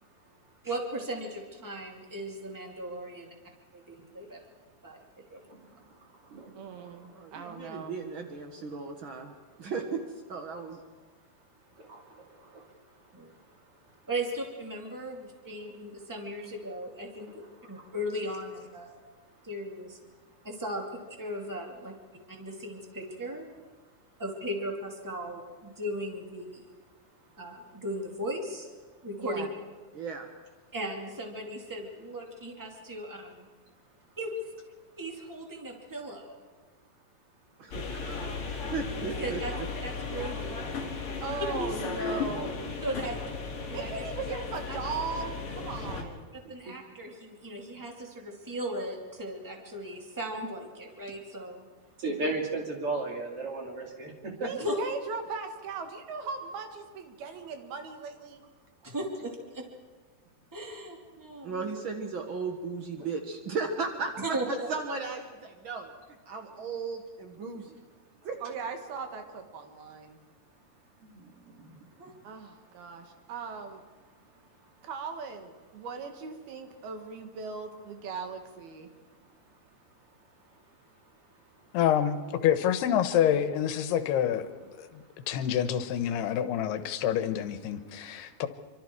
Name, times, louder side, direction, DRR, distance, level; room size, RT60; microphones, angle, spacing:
voice 1, 0.6-3.3 3.7-4.4 4.8-5.0 5.3-5.4 13.1-13.3 14.1-19.0 19.4-20.0 20.4-21.9 22.3-23.5 24.2-26.7 27.4-28.7 29.0-29.5 30.7-33.5 34.2-34.3 35.0-36.4 39.2-39.5 39.8-40.5 41.3-41.4 42.8-43.2 43.7-43.9 44.7-44.8 46.5-51.6 54.6-54.8 58.8-59.6 60.5-61.7 64.2-64.7 72.0-72.1, right 1 dB, 5° right, 1 dB, 1.7 m, -37 dB
voice 2, 5.5-7.3 11.7-12.9 13.3-13.4 17.3-17.9 46.7-46.8 52.0-54.5 71.0-71.8 80.5-80.7 85.0-85.1 88.0-88.2, right 2 dB, 40° right, 1 dB, 3.2 m, -37 dB
voice 3, 6.5-8.0 29.2-29.5 41.2-43.1 43.7-46.3 54.4-58.4 68.4-70.2 72.2-73.8 74.8-78.9, right 5 dB, 70° right, 6 dB, 3.4 m, -38 dB
voice 4, 7.1-9.3 9.6-10.0 10.3-10.8 29.9-30.3 37.6-39.4 61.4-65.9 66.3-67.8 68.2-68.4, right 4 dB, 90° right, 4 dB, 1.1 m, -36 dB
sound 1, 37.7-46.0, left 4 dB, 40° left, 2.7 m, -35 dB
voice 5, 81.7-88.5, left 10 dB, 85° left, 10 dB, 3.0 m, -27 dB
26.0 x 25.0 x 4.7 m, 1.3 s
omnidirectional pair, 4.6 m